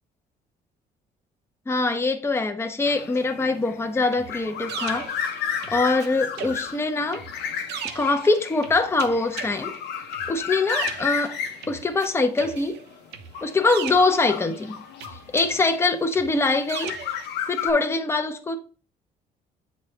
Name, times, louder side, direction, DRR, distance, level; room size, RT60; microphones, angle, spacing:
voice 1, 1.7-5.1 5.7-7.2 7.9-9.8 10.3-11.4 11.7-12.8 13.4-14.8 15.3-17.0 17.5-18.6, left 3 dB, 15° left, 0.8 m, -23 dB
sound 1, 2.8-15.7 16.4-17.7, left 7 dB, 80° left, 0.9 m, -33 dB
sound 2, 4.1-6.1 6.4-12.1 12.4-14.6 15.0-17.3, right 8 dB, 85° right, 0.9 m, -38 dB
8.0 x 4.2 x 3.3 m
cardioid pair, 110°, 17 cm